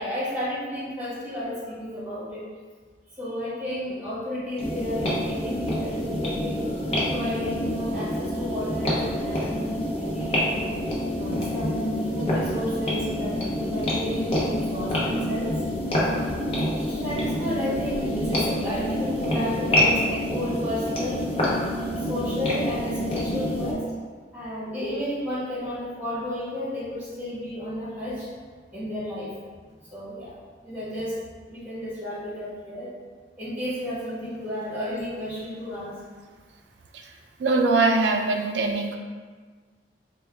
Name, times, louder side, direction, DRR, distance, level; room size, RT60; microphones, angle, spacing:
voice 1, 0.0-2.4 3.2-6.7 7.1-10.6 11.2-15.5 16.9-21.3 21.8-23.8 24.3-28.3 28.7-29.3 29.9-30.4 30.6-31.1 31.5-32.9 33.4-35.9, equal, 10° right, -10 dB, 1.4 m, -32 dB
sound 1, 4.6-23.7, left 1 dB, 35° left, 0.7 m, -27 dB
voice 2, 37.4-39.0, right 3 dB, 80° right, 3 dB, 0.4 m, -22 dB
3.7 x 2.2 x 3.3 m, 1.5 s
head